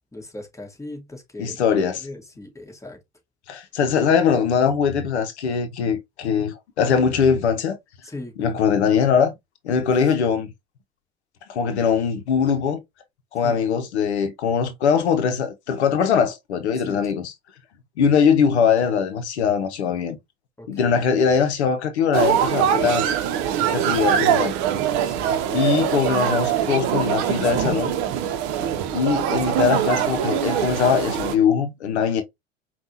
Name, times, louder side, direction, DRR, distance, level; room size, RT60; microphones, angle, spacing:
voice 1, 0.1-1.7 2.0-3.0 8.0-8.5 13.4-13.6 16.8-17.0 20.6-20.9 25.0-25.3 28.6-28.9, left 2 dB, 10° left, 1.5 m, -38 dB
voice 2, 1.4-2.1 3.5-7.8 8.4-9.3 9.6-10.5 11.5-12.8 13.3-17.3 18.0-20.2 20.7-23.0 23.7-24.5 25.5-28.0 28.9-32.2, left 6 dB, 80° left, 0.7 m, -21 dB
sound 1, 22.1-31.3, right 9 dB, 55° right, 0.7 m, -23 dB
5.2 x 2.4 x 2.8 m
figure-of-eight pair, 70°, 33 cm